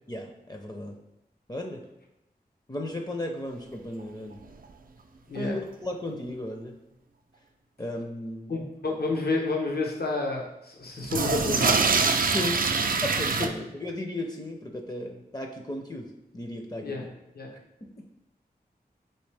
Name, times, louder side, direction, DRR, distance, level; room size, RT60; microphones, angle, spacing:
voice 1, 0.1-1.0 1.5-1.9 2.7-4.4 5.3-6.8 7.8-8.5 12.3-12.6 13.0-17.1 17.8-18.0, left 1 dB, 25° left, 2 dB, 0.5 m, -35 dB
sound 1, 4.0-4.1 4.3-4.4 4.6-4.7 5.3-5.4 11.0-13.5, right 4 dB, 60° right, 0.4 m, -24 dB
voice 2, 5.3-5.6 8.5-12.0 13.4-13.7 16.8-17.6, left 3 dB, 70° left, 0 dB, 0.8 m, -30 dB
4.3 x 3.2 x 3.3 m, 0.90 s
wide cardioid pair, 60°, 17 cm